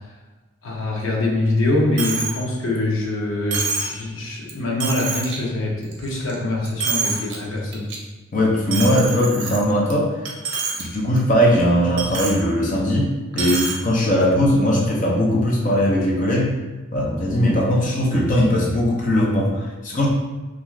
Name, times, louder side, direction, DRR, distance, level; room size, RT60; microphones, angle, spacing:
voice 1, 0.6-7.9, left 2 dB, 80° left, -2 dB, 0.7 m, -24 dB
Coin (dropping), 2.0-2.4 2.8-2.9 3.5-4.0 4.5-4.6 4.8-5.4 5.8-6.3 6.6-7.4 7.7-8.0 8.7-9.9 10.3-10.8 11.2-11.3 12.0-12.4 13.3-13.8, right 4 dB, 60° right, 0.5 m, -26 dB
voice 2, 8.3-10.1 10.8-13.1 13.3-16.5 16.9-20.1, equal, 40° left, -3 dB, 0.6 m, -19 dB
2.5 x 2.3 x 3.1 m, 1.2 s
head